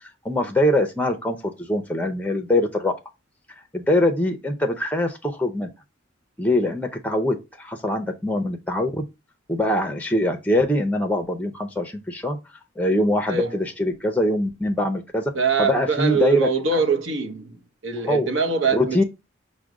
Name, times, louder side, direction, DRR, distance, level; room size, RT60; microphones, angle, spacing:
voice 1, 0.2-2.9 3.7-5.7 6.4-9.0 9.5-12.4 12.8-15.3 15.6-16.8 18.1-18.3 18.7-19.0, left 1 dB, 10° left, 0.6 m, -23 dB
voice 2, 13.3-13.6 15.3-19.0, right 5 dB, 75° right, 0.7 m, -23 dB
4.9 x 2.2 x 4.6 m
head